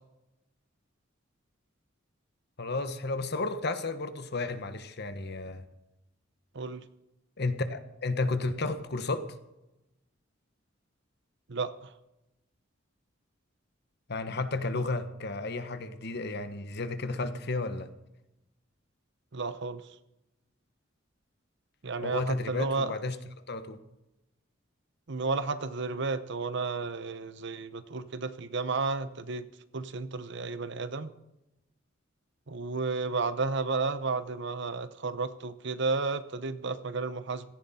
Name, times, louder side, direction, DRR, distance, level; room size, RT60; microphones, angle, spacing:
voice 1, 2.6-5.6 7.4-9.3 14.1-17.9 22.0-23.2 23.5-23.8, left 3 dB, 55° left, 10 dB, 1.2 m, -32 dB
voice 2, 11.5-11.9 19.3-19.8 21.8-23.0 25.1-29.4 29.7-31.1 32.5-37.4, right 4 dB, 65° right, 13 dB, 0.8 m, -32 dB
16.5 x 14.5 x 4.3 m, 0.93 s
head